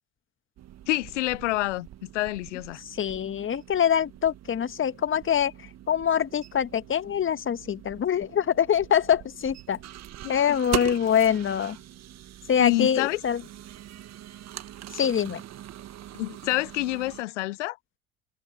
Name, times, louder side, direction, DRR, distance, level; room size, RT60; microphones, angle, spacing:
sound 1, 0.6-17.2, right 12 dB, 45° right, 1.8 m, -41 dB
voice 1, 0.9-2.8 10.2-10.9 12.6-13.2 16.1-17.8, left 18 dB, 70° left, 0.8 m, -28 dB
voice 2, 2.9-5.5 5.9-9.8 10.3-11.8 12.5-13.4 14.9-15.4, left 8 dB, 35° left, 1.8 m, -24 dB
figure-of-eight pair, 60°, 37 cm